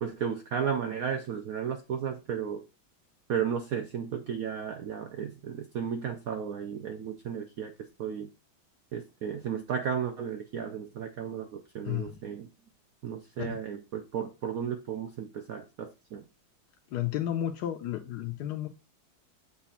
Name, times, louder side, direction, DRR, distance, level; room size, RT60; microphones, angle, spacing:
voice 1, 0.0-2.6 3.3-7.7 8.0-8.3 8.9-12.5 13.0-16.2, right 7 dB, 80° right, 6 dB, 0.7 m, -34 dB
voice 2, 11.8-12.2 13.4-13.5 16.9-18.7, left 12 dB, 70° left, 3 dB, 1.0 m, -32 dB
7.0 x 2.5 x 5.5 m, 0.29 s
omnidirectional pair, 2.2 m